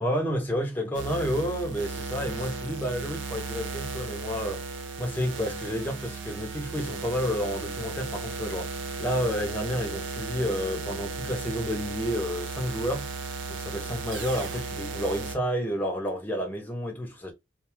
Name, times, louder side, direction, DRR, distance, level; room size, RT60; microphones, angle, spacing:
voice 1, 0.0-4.7 5.0-13.1 13.5-17.3, equal, 10° left, 0.6 m, -30 dB
sound 1, 0.9-15.4, right 4 dB, 70° right, 0.6 m, -35 dB
2.5 x 2.3 x 2.9 m
head